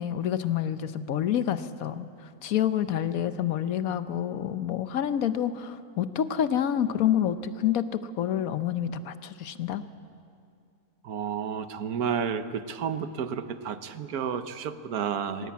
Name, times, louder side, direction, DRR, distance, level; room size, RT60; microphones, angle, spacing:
voice 1, 0.0-2.1 2.4-9.8, left 10 dB, 70° left, 12 dB, 1.2 m, -28 dB
voice 2, 11.0-15.5, right 7 dB, 80° right, 11 dB, 1.4 m, -31 dB
19.5 x 17.5 x 8.5 m, 2.4 s
omnidirectional pair, 1.6 m